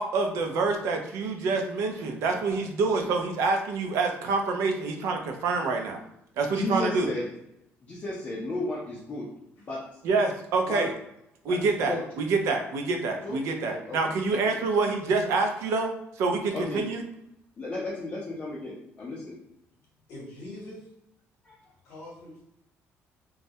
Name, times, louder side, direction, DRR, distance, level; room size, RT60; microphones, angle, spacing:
voice 1, 0.0-6.0 6.4-7.1 10.0-10.9 11.4-15.9 16.2-17.0, right 3 dB, 80° right, 4 dB, 0.4 m, -27 dB
voice 2, 6.5-7.3 7.8-9.3 9.7-9.8 10.7-10.9 11.4-11.6 11.8-12.0 13.2-13.4 13.7-14.0 14.3-14.4 16.5-16.9 17.6-19.4 21.4-21.6, left 2 dB, 30° left, -5 dB, 0.5 m, -33 dB
voice 3, 20.1-20.9 21.8-22.4, left 1 dB, 75° left, -5 dB, 0.8 m, -43 dB
2.2 x 2.0 x 2.6 m, 0.82 s
cardioid pair, 140°, 5 cm